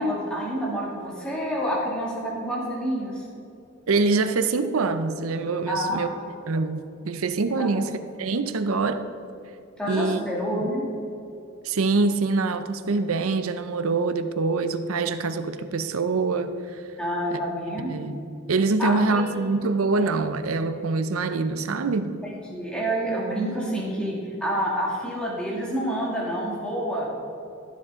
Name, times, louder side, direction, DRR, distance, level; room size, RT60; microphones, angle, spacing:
voice 1, 0.0-3.2 5.7-6.1 7.6-7.7 9.8-10.9 17.0-17.9 18.8-19.2 22.3-27.1, equal, 5° left, -5 dB, 2.4 m, -28 dB
voice 2, 3.9-6.1 6.5-6.8 7.0-9.0 9.9-10.2 11.6-16.5 17.3-17.4 17.9-18.2 18.5-22.2, right 3 dB, 75° right, 9 dB, 0.6 m, -24 dB
15.5 x 7.6 x 3.7 m, 2.7 s
head